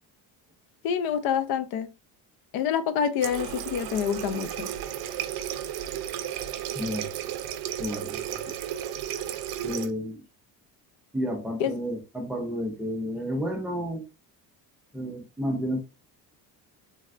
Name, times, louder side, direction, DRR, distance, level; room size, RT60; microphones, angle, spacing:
voice 1, 0.8-1.9 2.5-4.7 11.6-11.7, left 8 dB, 65° left, 0.5 m, -27 dB
Water tap faucet, 3.2-9.9, right 11 dB, 70° right, 0.5 m, -33 dB
voice 2, 6.7-7.1 7.8-8.4 9.6-10.2 11.1-14.0 14.9-15.8, equal, 5° right, 0.3 m, -31 dB
3.3 x 2.2 x 2.4 m
cardioid pair, 170°, 39 cm